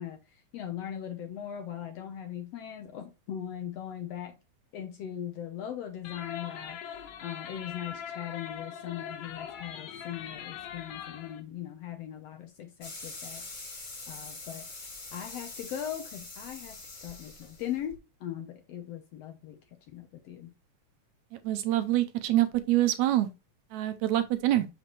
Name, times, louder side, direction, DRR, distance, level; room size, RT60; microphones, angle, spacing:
voice 1, 0.0-4.4 4.7-19.6 19.9-20.5, left 10 dB, 70° left, 1.6 m, -40 dB
sound 1, 6.0-11.4, left 8 dB, 85° left, 2.6 m, -41 dB
sound 2, 12.8-17.9, left 3 dB, 30° left, 1.9 m, -44 dB
voice 2, 21.3-23.3 23.7-24.7, right 14 dB, 75° right, 1.9 m, -26 dB
7.7 x 5.9 x 3.0 m
omnidirectional pair, 3.6 m